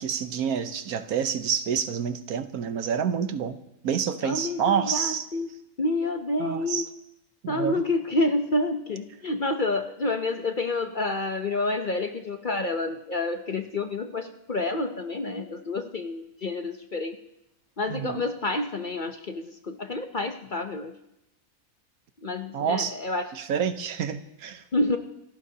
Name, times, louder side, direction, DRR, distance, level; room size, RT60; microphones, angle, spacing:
voice 1, 0.0-3.6 3.8-5.3 6.4-6.9 7.4-7.8 17.9-18.2 22.5-23.0 23.3-24.6, right 7 dB, 80° right, 9 dB, 1.4 m, -28 dB
voice 2, 4.2-5.5 5.8-6.9 7.5-17.2 17.8-20.9 22.2-23.3 24.7-25.0, left 2 dB, 40° left, 6 dB, 0.8 m, -28 dB
27.5 x 14.5 x 2.8 m, 0.86 s
omnidirectional pair, 1.5 m